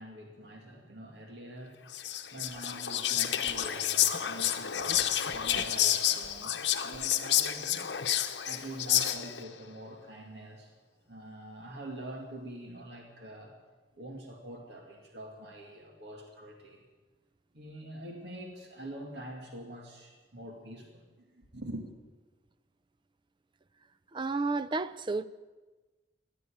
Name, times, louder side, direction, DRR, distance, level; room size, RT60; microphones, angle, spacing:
voice 1, 0.0-1.8 2.3-7.9 8.4-10.7 11.1-13.5 14.0-16.9 17.5-21.9, right 1 dB, 65° right, 2.3 m, -45 dB
Whispering, 1.9-9.5, left 11 dB, 70° left, 0.9 m, -29 dB
voice 2, 24.1-25.2, right 3 dB, 25° right, 0.5 m, -31 dB
15.0 x 10.5 x 8.7 m
head